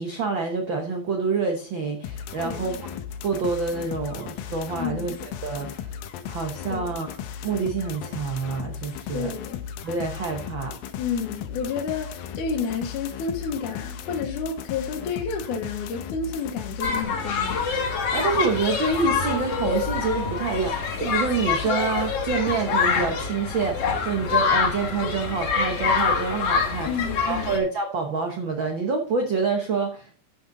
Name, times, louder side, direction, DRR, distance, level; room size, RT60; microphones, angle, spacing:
voice 1, 0.0-2.8 3.2-5.9 6.3-9.3 9.8-10.7 18.1-30.1, right 4 dB, 85° right, 1.0 m, -27 dB
sound 1, 2.0-17.0, left 8 dB, 85° left, 2.6 m, -36 dB
voice 2, 2.4-2.8 4.8-5.2 6.7-7.0 9.1-9.7 11.0-17.6 26.9-27.5, left 5 dB, 70° left, 2.6 m, -30 dB
sound 2, 16.8-27.6, left 5 dB, 55° left, 2.1 m, -25 dB
13.5 x 5.5 x 3.9 m
omnidirectional pair, 4.0 m